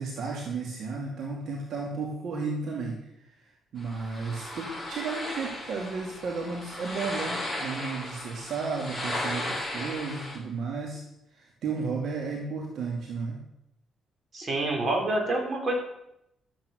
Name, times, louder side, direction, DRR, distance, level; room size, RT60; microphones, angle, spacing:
voice 1, 0.0-11.0 11.3-13.4, right 4 dB, 70° right, 0 dB, 2.5 m, -33 dB
sound 1, 3.8-10.4, left 1 dB, ahead, 6.7 m, -36 dB
voice 2, 14.3-15.7, right 2 dB, 40° right, 1 dB, 5.3 m, -27 dB
13.5 x 9.1 x 6.4 m, 0.81 s
cardioid pair, 90°, 0 cm